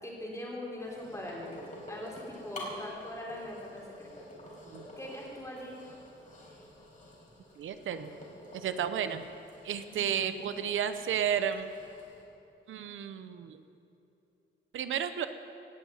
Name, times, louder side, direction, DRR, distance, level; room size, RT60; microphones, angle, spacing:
voice 1, 0.0-4.3 5.0-5.8 9.9-10.6, left 1 dB, 15° left, -3 dB, 3.9 m, -42 dB
sound 1, 0.8-12.2, equal, 40° left, 4.4 m, -49 dB
voice 2, 7.6-8.1 8.5-9.2 9.6-11.7 12.7-13.6 14.7-15.3, right 8 dB, 85° right, 10 dB, 0.7 m, -32 dB
17.5 x 7.2 x 9.2 m, 2.8 s
wide cardioid pair, 125°, 20 cm